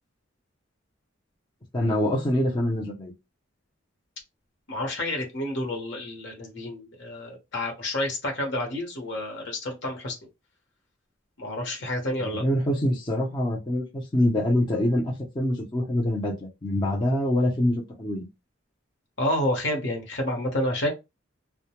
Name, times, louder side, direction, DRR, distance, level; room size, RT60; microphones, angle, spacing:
voice 1, 1.7-3.1 12.2-18.3, left 1 dB, 25° left, 0.5 m, -25 dB
voice 2, 4.7-10.2 11.4-12.4 19.2-20.9, left 1 dB, 60° left, 0.9 m, -29 dB
2.1 x 2.1 x 2.8 m
head